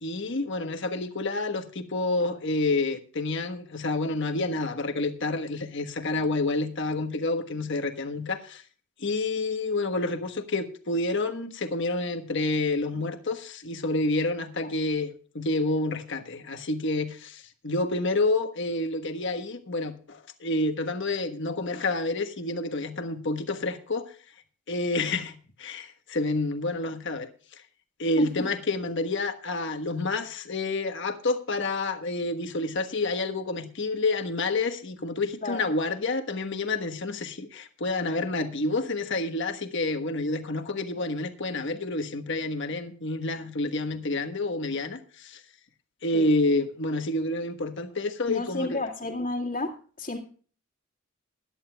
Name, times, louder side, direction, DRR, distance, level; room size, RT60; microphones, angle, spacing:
voice 1, 0.0-8.6 9.0-24.1 24.7-27.3 28.0-45.4 46.0-48.8, left 2 dB, 60° left, 1.4 m, -29 dB
voice 2, 28.2-28.5 35.4-35.6 46.1-46.3 48.3-50.2, left 2 dB, 40° left, 2.0 m, -32 dB
21.0 x 11.0 x 2.3 m
head